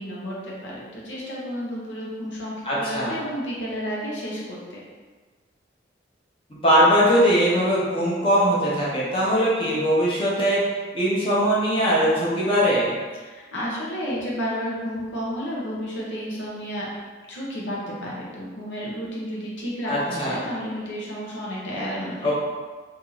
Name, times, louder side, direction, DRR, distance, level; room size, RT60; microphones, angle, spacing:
voice 1, 0.0-2.5 2.8-4.8 13.2-16.9 17.3-22.3, equal, 85° left, -5 dB, 0.9 m, -31 dB
voice 2, 2.6-3.1 6.6-10.6 10.9-12.9 19.8-20.4 22.2-22.3, equal, 30° left, -7 dB, 0.8 m, -20 dB
2.8 x 2.7 x 3.9 m, 1.4 s
head